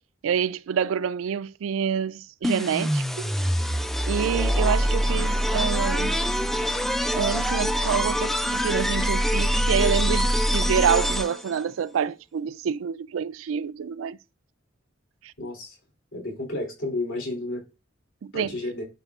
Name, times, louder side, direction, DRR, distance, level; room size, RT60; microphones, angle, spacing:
voice 1, 0.2-3.3 4.1-6.2 7.1-14.2 15.2-15.3 18.2-18.5, right 7 dB, 90° right, 0.3 m, -27 dB
sound 1, 2.4-11.6, equal, ahead, 0.4 m, -24 dB
voice 2, 15.4-15.8 16.1-17.6 18.3-18.8, left 2 dB, 70° left, 3.2 m, -31 dB
11.5 x 4.4 x 2.4 m
head